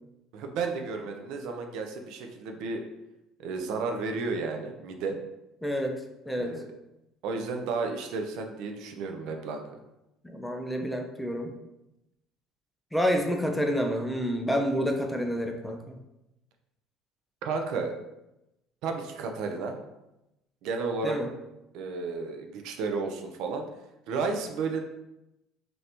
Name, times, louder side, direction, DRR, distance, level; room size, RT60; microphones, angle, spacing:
voice 1, 0.3-2.8 3.4-5.2 6.4-6.7 7.2-9.6 17.4-18.0 18.8-19.8 20.6-21.2 21.7-23.6 24.1-24.8, right 4 dB, 70° right, 4 dB, 0.4 m, -32 dB
voice 2, 5.6-6.0 6.3-6.6 10.2-11.5 12.9-16.0 21.0-21.3, equal, 5° left, 3 dB, 0.4 m, -28 dB
2.8 x 2.6 x 3.3 m, 0.91 s
cardioid pair, 115°, 0 cm